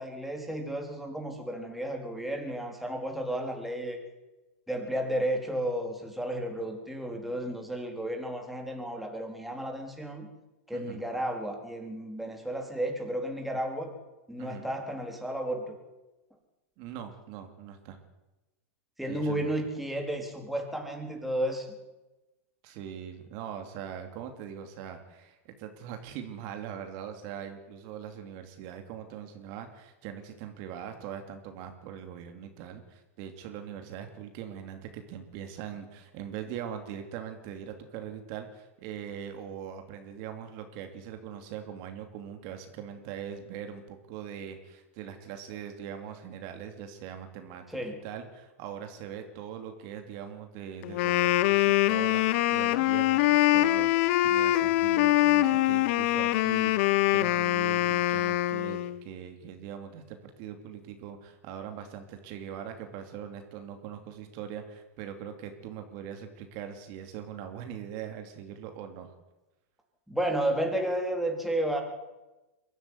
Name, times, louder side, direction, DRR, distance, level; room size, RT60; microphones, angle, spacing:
voice 1, 0.0-4.0 4.7-10.3 10.7-13.9 14.3-15.8 19.0-21.7 47.7-48.0 70.1-71.8, right 1 dB, ahead, 2 dB, 3.8 m, -32 dB
voice 2, 10.7-11.0 14.4-14.7 16.8-18.0 19.1-19.5 22.6-47.6 48.0-69.1, right 9 dB, 50° right, 6 dB, 2.8 m, -41 dB
Wind instrument woodwind instrument, 50.8-59.0, left 15 dB, 60° left, 1.0 m, -24 dB
23.5 x 13.0 x 9.6 m, 1.1 s
hypercardioid pair, 125°, 8 cm